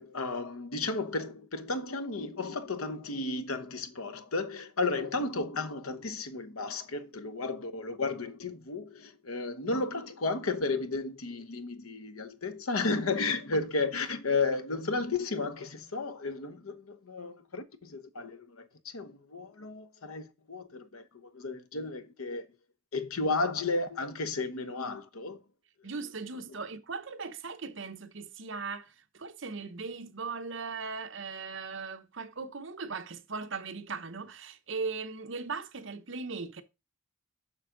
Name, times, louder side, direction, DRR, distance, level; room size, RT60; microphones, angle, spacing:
voice 1, 0.0-22.5 22.9-25.4, left 3 dB, 90° left, 1.0 m, -33 dB
voice 2, 25.8-36.6, right 4 dB, 65° right, 0.9 m, -38 dB
7.2 x 6.1 x 3.8 m
head